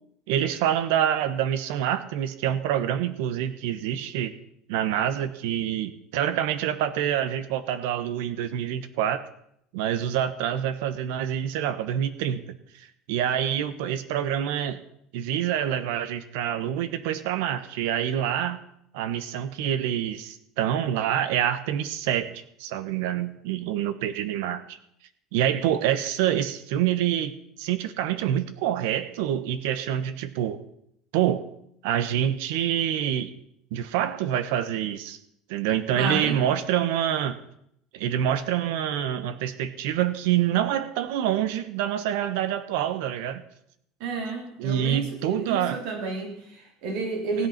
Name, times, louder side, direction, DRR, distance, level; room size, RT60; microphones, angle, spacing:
voice 1, 0.3-4.4 4.7-9.2 9.7-14.8 15.1-18.6 18.9-24.8 25.3-27.3 27.6-30.6 31.1-31.5 31.8-33.3 33.7-35.2 35.5-37.4 37.9-43.4 44.6-45.8, right 10 dB, 85° right, 13 dB, 1.1 m, -26 dB
voice 2, 35.9-36.4 44.0-47.5, right 4 dB, 70° right, 2 dB, 3.7 m, -31 dB
16.5 x 8.3 x 5.9 m, 0.73 s
cardioid pair, 155°, 0 cm